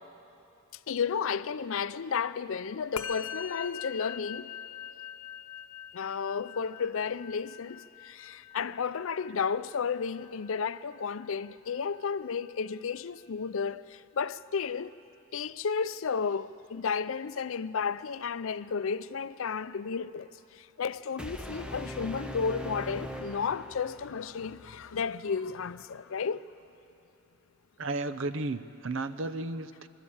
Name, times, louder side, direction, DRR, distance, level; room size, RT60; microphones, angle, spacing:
voice 1, 0.9-4.5 5.9-14.9 15.3-26.4, left 6 dB, 70° left, 0.5 m, -33 dB
Musical instrument, 3.0-12.5, left 8 dB, 85° left, 0.8 m, -44 dB
sound 1, 21.2-24.2, equal, 5° right, 0.6 m, -40 dB
voice 2, 27.8-29.9, right 2 dB, 65° right, 0.7 m, -33 dB
25.0 x 12.5 x 8.7 m
head